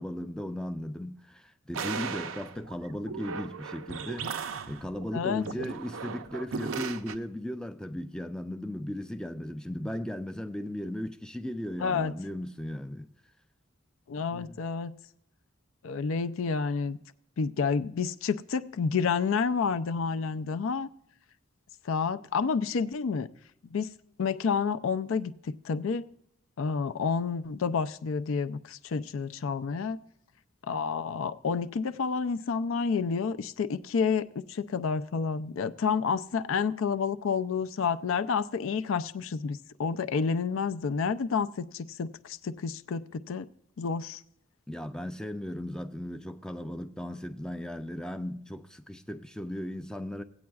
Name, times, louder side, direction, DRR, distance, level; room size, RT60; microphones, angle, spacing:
voice 1, 0.0-13.1 14.3-14.6 44.7-50.2, left 1 dB, 5° left, 0.3 m, -37 dB
sound 1, 1.7-7.1, right 6 dB, 75° right, 0.5 m, -37 dB
voice 2, 5.1-5.4 11.8-12.1 14.1-14.9 15.8-17.0 17.4-20.9 21.8-23.3 23.6-23.9 24.2-25.3 25.6-26.1 26.6-30.0 30.6-43.5 43.8-44.2, left 5 dB, 75° left, 0.4 m, -29 dB
17.5 x 8.5 x 2.3 m
head